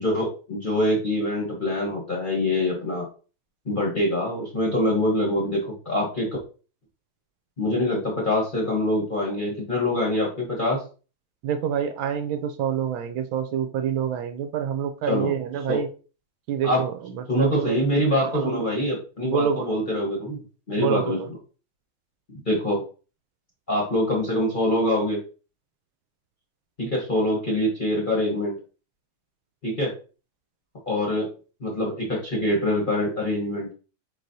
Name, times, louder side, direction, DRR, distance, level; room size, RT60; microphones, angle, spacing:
voice 1, 0.0-3.0 3.6-6.3 7.6-10.8 15.1-15.3 15.7-15.8 16.6-16.8 17.3-21.2 22.3-22.8 23.7-25.2 26.8-28.6 29.6-29.9 30.9-31.3 31.6-33.7, left 1 dB, 30° left, -3 dB, 1.0 m, -24 dB
voice 2, 11.4-15.9 16.5-17.8 18.2-18.7 19.2-19.8 20.8-21.3, right 8 dB, 75° right, 8 dB, 1.3 m, -27 dB
4.7 x 4.1 x 2.6 m, 0.36 s
omnidirectional pair, 2.3 m